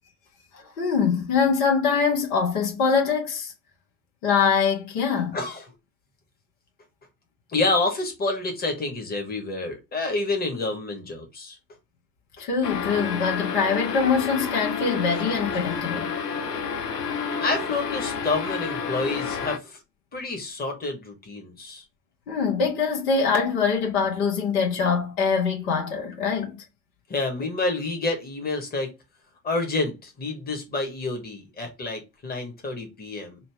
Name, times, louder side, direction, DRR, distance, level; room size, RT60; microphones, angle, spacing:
voice 1, 0.5-3.5 4.2-5.4 12.4-16.1 22.3-26.6, left 5 dB, 65° left, 1.6 m, -23 dB
voice 2, 5.3-5.7 7.5-11.6 17.4-19.8 20.1-21.8 27.1-28.9 29.4-33.4, left 3 dB, 20° left, 1.5 m, -28 dB
sound 1, 12.6-19.6, left 6 dB, 85° left, 0.7 m, -30 dB
5.7 x 2.4 x 3.5 m
figure-of-eight pair, 65°, 47 cm